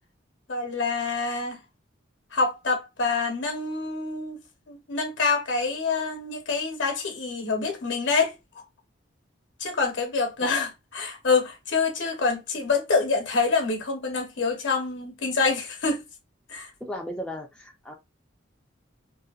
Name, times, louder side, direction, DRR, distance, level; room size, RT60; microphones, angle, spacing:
voice 1, 0.5-1.6 2.3-4.4 4.7-8.6 9.6-16.0 16.5-16.7, left 4 dB, 65° left, 0.9 m, -26 dB
voice 2, 16.8-17.9, equal, 5° left, 0.4 m, -35 dB
2.7 x 2.1 x 2.3 m
head